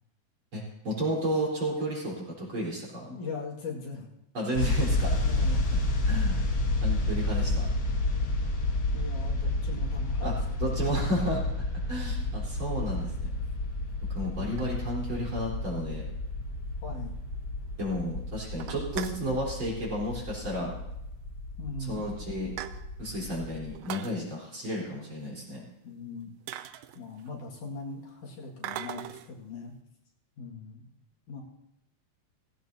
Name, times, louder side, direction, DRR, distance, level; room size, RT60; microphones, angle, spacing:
voice 1, 0.5-3.2 4.3-5.2 6.0-6.4 6.8-7.7 10.2-10.3 10.6-11.4 11.9-13.3 14.1-16.0 17.8-20.7 21.9-22.5 23.0-25.6, equal, 40° right, -5 dB, 4.5 m, -32 dB
voice 2, 3.1-4.1 5.2-5.7 8.9-10.8 14.3-14.8 16.8-17.2 21.6-22.0 25.8-26.3 26.9-29.7 30.4-30.9 31.3-31.4, left 3 dB, 75° left, -2 dB, 3.4 m, -40 dB
sound 1, 4.5-23.7, left 2 dB, 50° left, 1.2 m, -30 dB
sound 2, 12.3-12.5 13.3-13.4 14.2-15.3 15.7-15.8 16.0-16.1 16.5-16.6 16.9-17.0 17.3-17.8 18.1-18.2 18.5-19.3 20.4-20.6 20.9-21.0 21.7-21.8 22.1-23.1 23.7-24.2 25.9-26.0 26.5-27.5 28.6-29.4, right 12 dB, 90° right, 1.4 m, -41 dB
17.0 x 16.0 x 2.8 m, 0.82 s
omnidirectional pair, 3.6 m